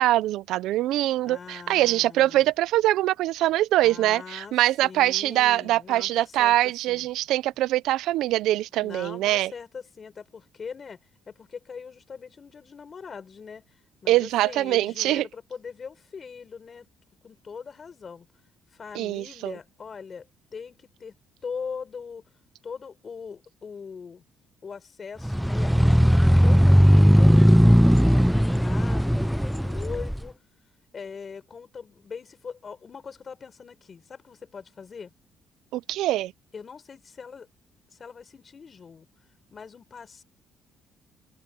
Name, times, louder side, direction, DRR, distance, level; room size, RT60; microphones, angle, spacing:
voice 1, 0.0-9.5 14.1-15.3 18.9-19.5 35.7-36.3, right 15 dB, 85° right, 0.4 m, -23 dB
voice 2, 1.2-2.5 3.8-4.5 4.8-6.6 6.9-7.1 8.8-11.0 11.3-13.7 14.0-16.9 17.2-18.3 18.7-20.3 20.5-21.2 21.4-22.3 22.6-24.2 24.6-26.1 26.4-30.4 30.9-35.1 36.5-37.5 37.9-39.1 39.5-40.2, left 6 dB, 30° left, 6.4 m, -41 dB
sound 1, 25.2-30.2, equal, ahead, 0.4 m, -18 dB
cardioid pair, 165°, 0 cm